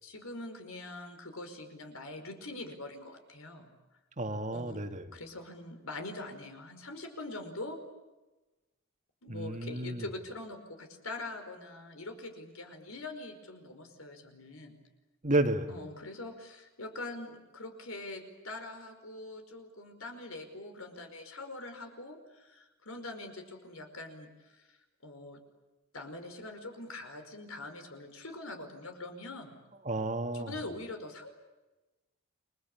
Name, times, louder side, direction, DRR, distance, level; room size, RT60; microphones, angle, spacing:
voice 1, 0.0-3.7 4.5-7.8 9.2-14.8 15.7-24.7 25.0-25.4 25.9-29.6 30.3-31.3, left 2 dB, 75° left, 6 dB, 5.2 m, -43 dB
voice 2, 4.2-5.2 9.3-10.1 15.2-15.7 29.9-30.5, right 2 dB, 35° right, 6 dB, 2.0 m, -31 dB
29.5 x 21.0 x 8.7 m, 1.1 s
head